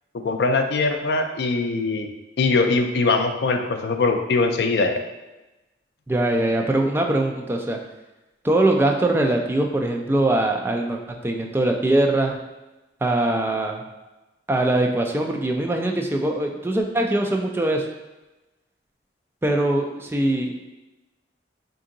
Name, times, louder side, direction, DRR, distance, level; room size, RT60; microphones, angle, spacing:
voice 1, 0.2-2.1 2.4-5.0, left 3 dB, 65° left, 5 dB, 0.4 m, -21 dB
voice 2, 6.1-7.8 8.4-12.4 13.0-13.8 14.5-17.8 19.4-20.7, right 1 dB, 15° right, 2 dB, 0.3 m, -22 dB
3.7 x 2.6 x 3.7 m, 1.1 s
head